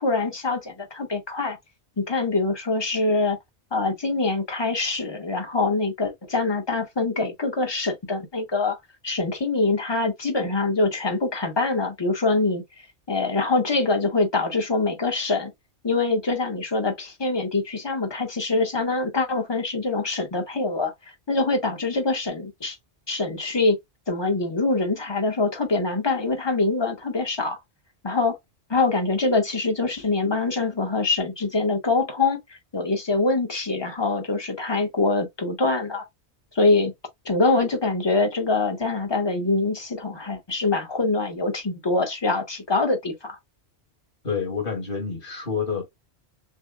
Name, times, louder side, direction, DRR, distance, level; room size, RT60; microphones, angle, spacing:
voice 1, 0.0-1.6 2.0-3.4 3.7-8.8 9.0-12.6 13.1-15.5 15.8-20.9 21.3-22.8 23.1-23.8 24.1-27.6 28.0-28.4 28.7-32.4 32.7-36.0 36.5-36.9 37.2-43.4, left 3 dB, 25° left, 1.0 m, -24 dB
voice 2, 44.2-45.8, left 5 dB, 45° left, 2.0 m, -28 dB
6.4 x 2.3 x 2.3 m
omnidirectional pair, 1.2 m